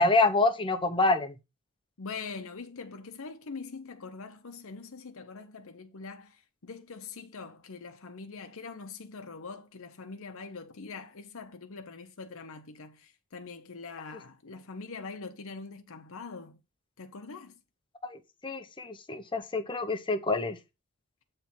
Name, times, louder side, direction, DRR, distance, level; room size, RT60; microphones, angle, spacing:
voice 1, 0.0-1.4 18.0-20.6, left 2 dB, 20° left, 0.7 m, -27 dB
voice 2, 2.0-16.6 17.0-17.6, left 4 dB, 65° left, 0.8 m, -43 dB
7.3 x 3.3 x 5.9 m
head